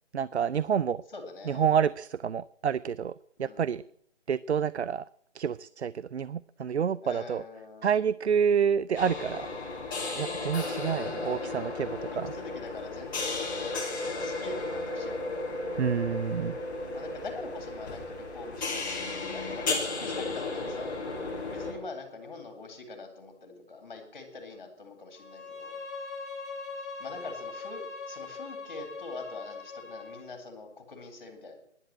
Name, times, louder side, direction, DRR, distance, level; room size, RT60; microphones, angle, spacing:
voice 1, 0.1-1.0 1.5-3.1 3.4-3.8 4.3-5.1 5.3-7.4 7.8-9.5 10.2-11.9 12.1-12.3 15.8-16.6, right 7 dB, 65° right, 19 dB, 0.5 m, -28 dB
voice 2, 1.1-1.7 3.4-3.8 7.0-8.0 10.6-11.5 12.1-15.4 16.9-21.0 21.5-25.8 27.0-31.6, left 3 dB, 40° left, 6 dB, 3.9 m, -44 dB
sound 1, 8.9-21.7, left 3 dB, 15° left, 2.8 m, -34 dB
Bowed string instrument, 25.2-30.3, left 4 dB, ahead, 1.3 m, -41 dB
14.5 x 11.0 x 8.8 m, 0.68 s
hypercardioid pair, 175°, 35 cm